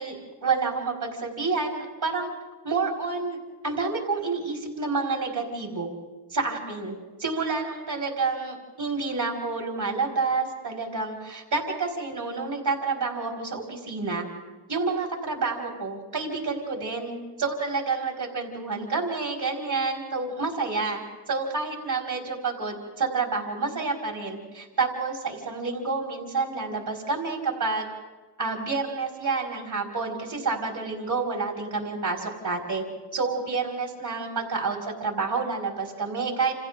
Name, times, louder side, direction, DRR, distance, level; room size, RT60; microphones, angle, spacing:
voice 1, 0.0-2.3 2.6-3.4 3.6-5.9 6.3-14.3 14.7-27.9 28.4-32.8 33.1-36.5, right 4 dB, 60° right, 0 dB, 5.0 m, -29 dB
29.5 x 27.5 x 3.8 m, 1.2 s
cardioid pair, 55°, 43 cm